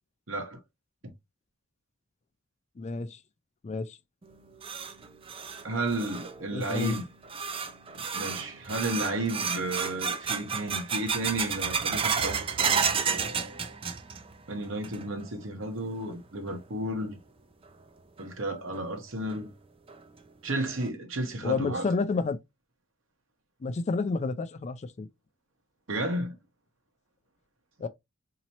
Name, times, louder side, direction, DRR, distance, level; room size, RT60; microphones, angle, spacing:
voice 1, 0.3-0.6 1.0-1.1 5.6-7.1 7.9-12.8 14.5-17.2 18.2-19.5 20.4-21.9 25.9-26.4, right 1 dB, 75° right, 1.1 m, -33 dB
voice 2, 2.8-3.2 3.6-4.0 6.5-7.0 21.4-22.4 23.6-25.1 27.8-27.9, left 3 dB, 35° left, 0.4 m, -30 dB
sound 1, 4.2-14.4 14.6-15.3 15.6-15.7 16.5-16.6 18.2-18.3 18.7-18.8 19.3-19.4 19.9-20.0 20.5-20.9, right 6 dB, 25° right, 0.4 m, -32 dB
4.1 x 2.9 x 2.8 m
head